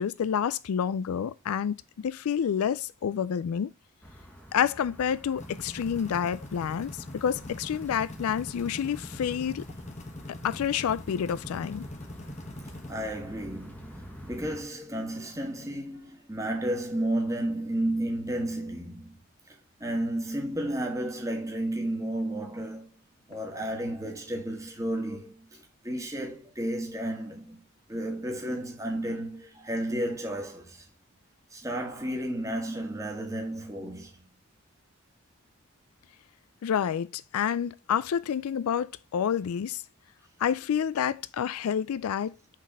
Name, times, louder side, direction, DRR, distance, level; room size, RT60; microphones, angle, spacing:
voice 1, 0.0-3.7 4.5-9.6 10.4-11.8 36.6-39.8 40.4-42.4, left 8 dB, 90° left, 0.4 m, -29 dB
sound 1, 4.0-14.6, equal, 5° left, 1.5 m, -47 dB
sound 2, 5.4-12.9, left 1 dB, 30° left, 1.1 m, -43 dB
voice 2, 12.9-19.1 19.8-22.9 23.3-27.6 27.9-30.9 31.5-34.1, right 1 dB, 15° right, 1.7 m, -32 dB
6.2 x 4.1 x 5.1 m
head